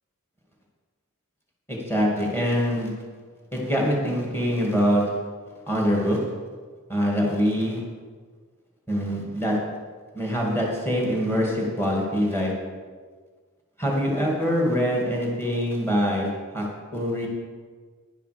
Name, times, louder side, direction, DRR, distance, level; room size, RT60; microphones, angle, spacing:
voice 1, 1.7-2.9 3.5-5.1 5.7-6.2 6.9-7.8 8.9-9.6 10.1-12.5 13.8-16.7 16.9-17.3, equal, 10° left, -2 dB, 2.3 m, -24 dB
11.0 x 10.5 x 5.1 m, 1.5 s
head